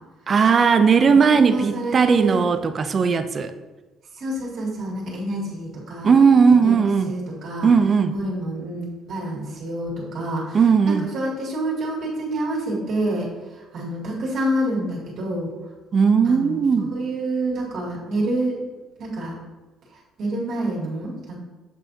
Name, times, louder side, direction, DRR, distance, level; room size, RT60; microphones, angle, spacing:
voice 1, 0.3-3.5 6.0-7.1 7.6-8.2 10.5-11.1 15.9-16.9, right 5 dB, 30° right, 9 dB, 0.3 m, -17 dB
voice 2, 1.1-2.4 4.1-6.1 6.6-6.7 7.0-7.7 8.1-15.5 16.2-18.6 19.0-19.4 19.9-21.4, right 1 dB, 50° right, -5 dB, 2.1 m, -28 dB
7.6 x 5.8 x 2.7 m, 1.2 s
cardioid pair, 165°, 0 cm